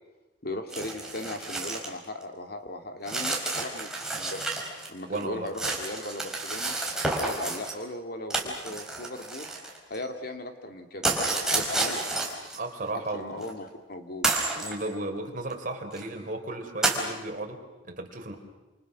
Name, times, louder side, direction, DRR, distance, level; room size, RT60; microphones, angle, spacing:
voice 1, 0.4-4.5 4.9-6.7 7.0-9.5 9.9-11.1 11.5-12.0 13.1-14.3, left 1 dB, 50° left, 5 dB, 2.6 m, -37 dB
sound 1, 0.7-1.9 2.2-2.3 3.1-4.9 5.2-7.7 8.3-10.0 11.0-12.6 13.4-13.5 14.2-14.8 15.5-15.6 15.9-16.1 16.8-17.1, right 2 dB, 5° right, 4.2 m, -30 dB
voice 2, 5.1-5.5 12.6-13.4 14.5-18.4, right 2 dB, 45° right, 3 dB, 3.8 m, -35 dB
29.0 x 28.5 x 6.2 m, 1.1 s
head